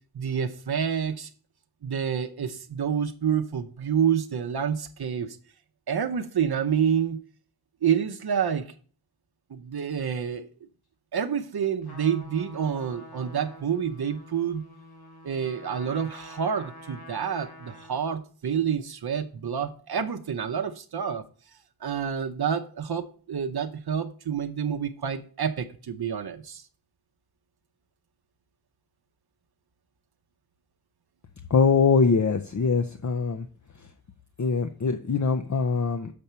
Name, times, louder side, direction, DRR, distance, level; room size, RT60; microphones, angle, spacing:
voice 1, 0.1-1.3 1.8-5.4 5.9-7.2 7.8-8.7 9.5-10.5 11.1-14.6 15.2-21.2 21.8-26.6, right 7 dB, 80° right, 0.7 m, -28 dB
Trumpet, 11.8-18.1, left 1 dB, 75° left, 2.5 m, -47 dB
voice 2, 31.5-33.5 34.4-36.1, left 5 dB, 50° left, 0.7 m, -23 dB
6.9 x 4.4 x 6.8 m
wide cardioid pair, 70°, 38 cm